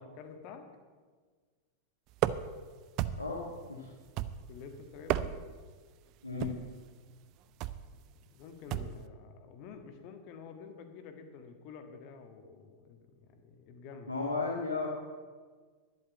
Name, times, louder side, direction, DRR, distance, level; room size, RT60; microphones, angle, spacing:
voice 1, 0.1-0.7 4.5-5.3 7.9-8.0 8.3-14.1, left 5 dB, 45° left, 6 dB, 1.6 m, -49 dB
sound 1, 2.2-2.6 3.0-3.4 4.2-4.6 5.0-5.6 6.4-6.7 7.6-7.9 8.7-9.0, right 12 dB, 40° right, 0.5 m, -33 dB
voice 2, 3.2-3.9 6.2-6.6 14.1-14.9, left 4 dB, 85° left, -3 dB, 1.6 m, -34 dB
11.0 x 8.3 x 7.8 m, 1.5 s
figure-of-eight pair, 90°, 0 cm